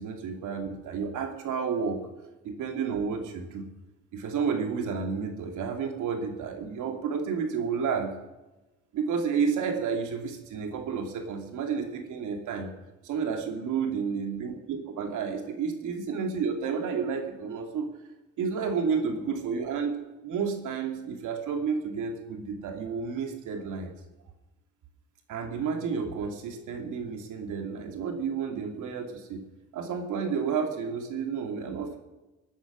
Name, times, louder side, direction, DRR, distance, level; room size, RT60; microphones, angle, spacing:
voice 1, 0.0-2.0 2.4-3.7 4.1-8.1 8.9-12.7 13.0-17.9 18.4-23.9 25.3-29.4 29.7-32.0, right 6 dB, 80° right, 3 dB, 2.7 m, -31 dB
20.5 x 9.5 x 6.2 m, 1.1 s
cardioid pair, 90°, 30 cm